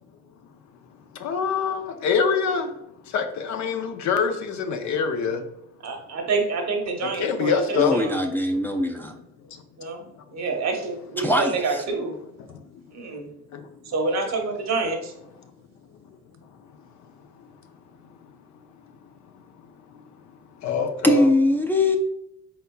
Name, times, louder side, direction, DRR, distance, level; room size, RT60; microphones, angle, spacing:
voice 1, 1.2-2.7 3.1-5.4 7.0-8.0 13.5-13.6 20.6-21.3, left 6 dB, 70° left, 7 dB, 0.6 m, -24 dB
voice 2, 5.8-8.2 9.8-10.1 10.3-12.1 12.9-13.3 13.8-15.1, right 3 dB, 60° right, 3 dB, 1.0 m, -27 dB
voice 3, 7.8-9.1 11.2-11.8 21.0-22.0, left 1 dB, 5° left, 1 dB, 0.4 m, -21 dB
4.2 x 4.0 x 2.2 m, 0.81 s
cardioid pair, 90°, 30 cm